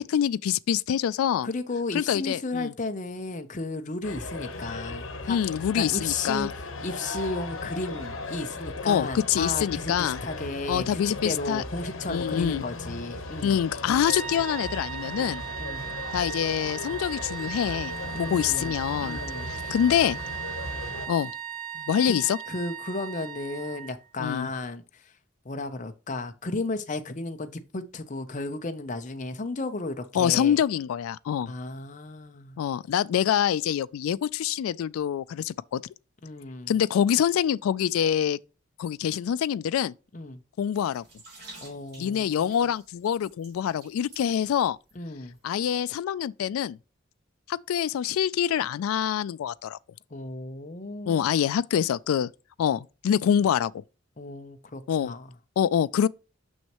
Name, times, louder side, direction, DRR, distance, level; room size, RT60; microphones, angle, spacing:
voice 1, 0.0-1.5 1.9-2.7 5.3-6.5 8.9-10.2 10.7-11.6 12.1-12.6 13.4-15.4 16.1-19.2 19.5-20.2 21.1-21.3 21.8-22.4 24.2-24.5 30.1-31.5 32.6-35.8 36.7-38.4 38.8-39.9 40.6-41.0 42.0-44.8 45.4-46.8 47.5-49.8 51.1-52.3 52.6-53.8 54.9-55.1 55.6-56.1, left 9 dB, 90° left, 0.3 m, -25 dB
voice 2, 1.4-6.5 6.8-13.6 15.6-15.9 18.1-18.7 19.0-19.7 22.1-22.2 22.5-25.1 25.4-30.6 31.5-32.6 36.2-36.7 40.1-40.4 41.6-42.5 45.0-45.4 50.1-51.4 54.2-55.3, left 3 dB, 35° left, 0.6 m, -34 dB
sound 1, 4.0-21.1, left 2 dB, 75° left, 1.2 m, -37 dB
sound 2, 14.0-24.0, right 9 dB, 75° right, 1.5 m, -37 dB
sound 3, 40.7-44.9 45.2-45.4, right 2 dB, 50° right, 3.4 m, -50 dB
6.4 x 6.1 x 3.0 m
head